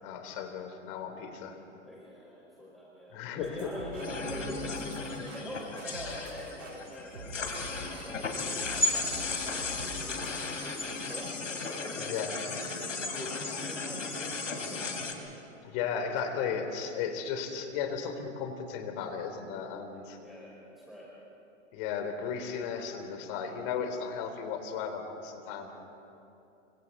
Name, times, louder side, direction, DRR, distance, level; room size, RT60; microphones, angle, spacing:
voice 1, 0.0-1.6 3.1-3.7 12.0-12.3 15.6-20.2 21.7-25.7, left 6 dB, 45° left, 6 dB, 3.6 m, -35 dB
voice 2, 1.8-7.3 7.7-10.2 10.6-11.3 11.6-12.2 12.8-15.0 20.2-21.1, equal, ahead, -6 dB, 5.2 m, -44 dB
sound 1, 3.4-11.3, right 1 dB, 90° right, 3.8 m, -46 dB
sound 2, 4.0-15.1, left 3 dB, 90° left, 3.2 m, -35 dB
30.0 x 26.0 x 4.2 m, 2.8 s
hypercardioid pair, 110°, 37 cm